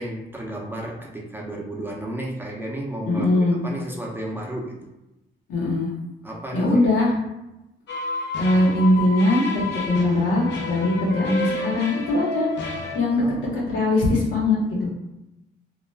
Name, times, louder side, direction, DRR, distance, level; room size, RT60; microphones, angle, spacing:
voice 1, 0.0-4.9 6.2-6.9 13.1-13.6, right 1 dB, 10° right, -2 dB, 0.6 m, -33 dB
voice 2, 3.1-3.6 5.5-5.9 6.5-7.2 8.4-12.5 12.9-13.2 13.7-14.9, left 2 dB, 90° left, -5 dB, 1.0 m, -21 dB
sound 1, 7.9-13.0, left 3 dB, 65° left, 0.6 m, -30 dB
2.3 x 2.2 x 3.2 m, 0.93 s
cardioid pair, 90°, 20 cm